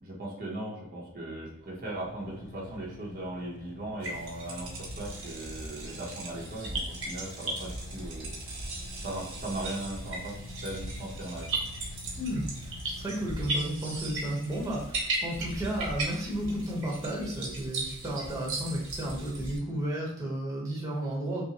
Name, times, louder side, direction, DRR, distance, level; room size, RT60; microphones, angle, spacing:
voice 1, 0.0-8.3 9.0-11.5, right 1 dB, 45° right, -3 dB, 0.8 m, -38 dB
Car / Idling, 1.1-14.1, left 2 dB, 50° left, 0.4 m, -48 dB
sound 1, 4.0-19.6, right 2 dB, 65° right, 1.2 m, -37 dB
voice 2, 12.2-21.5, right 1 dB, 15° right, -4 dB, 1.0 m, -33 dB
5.5 x 2.1 x 2.9 m, 0.82 s
head